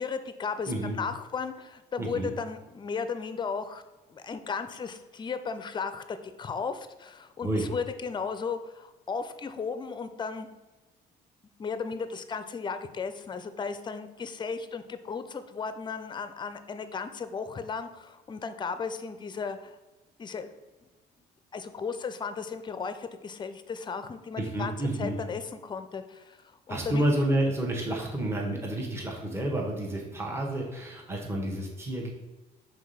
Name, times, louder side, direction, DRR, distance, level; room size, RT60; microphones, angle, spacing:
voice 1, 0.0-3.8 4.1-10.5 11.6-19.8 20.2-20.5 21.5-24.7 25.0-26.4 26.7-27.0, left 5 dB, 25° left, 10 dB, 0.5 m, -35 dB
voice 2, 0.7-1.0 2.0-2.3 7.4-7.7 24.4-25.2 26.7-32.1, right 1 dB, 15° right, -1 dB, 1.1 m, -30 dB
4.7 x 3.9 x 5.5 m, 1.1 s
cardioid pair, 110°, 17 cm